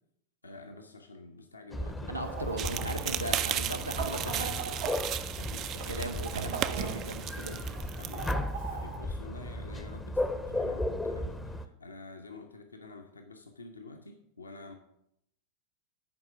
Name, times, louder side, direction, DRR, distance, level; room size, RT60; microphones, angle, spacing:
voice 1, 0.4-2.2 5.3-5.7 6.0-6.1 8.0-14.7, left 3 dB, 80° left, 4 dB, 0.7 m, -48 dB
sound 1, 1.7-11.7, left 1 dB, 5° left, 0.6 m, -36 dB
voice 2, 2.1-4.9 5.9-7.6 10.5-10.6, right 1 dB, 90° right, 5 dB, 0.8 m, -38 dB
Chicken rooster, 2.2-9.0, right 6 dB, 55° right, 1.4 m, -40 dB
sound 2, 2.6-8.3, right 11 dB, 35° right, 0.4 m, -36 dB
9.8 x 4.8 x 5.8 m, 0.78 s
figure-of-eight pair, 90°, 0 cm